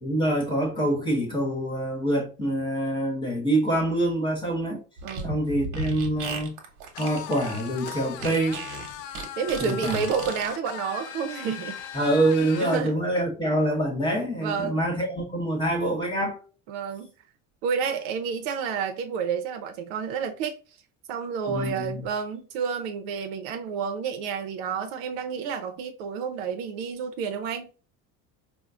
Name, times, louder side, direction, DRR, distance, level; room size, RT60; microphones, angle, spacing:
voice 1, 0.0-4.8 5.2-6.6 7.0-8.6 9.6-10.0 11.9-16.4 21.5-22.0, right 1 dB, 15° left, 1.1 m, -25 dB
Fart, 5.0-10.5, right 3 dB, 65° right, 1.1 m, -35 dB
voice 2, 5.0-5.4 9.4-11.8 12.6-13.0 14.4-14.8 16.7-17.1 17.6-20.6 21.1-27.7, right 6 dB, 85° right, 0.6 m, -30 dB
sound 1, 6.9-12.9, left 10 dB, 70° left, 0.5 m, -39 dB
4.4 x 2.1 x 2.4 m
cardioid pair, 150°, 35 cm